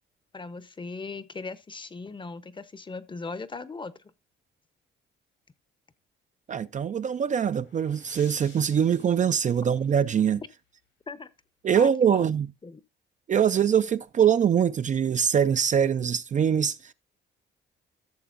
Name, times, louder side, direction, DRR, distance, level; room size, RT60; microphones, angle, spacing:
voice 1, 0.3-3.9 11.1-11.3 11.8-12.3 12.6-12.8, left 4 dB, 25° left, 0.7 m, -38 dB
voice 2, 6.5-10.4 11.6-12.5 13.3-16.9, right 8 dB, 40° right, 0.4 m, -23 dB
sound 1, 7.0-10.4, left 5 dB, 90° left, 4.3 m, -55 dB
14.5 x 6.8 x 2.5 m
cardioid pair, 90°, 20 cm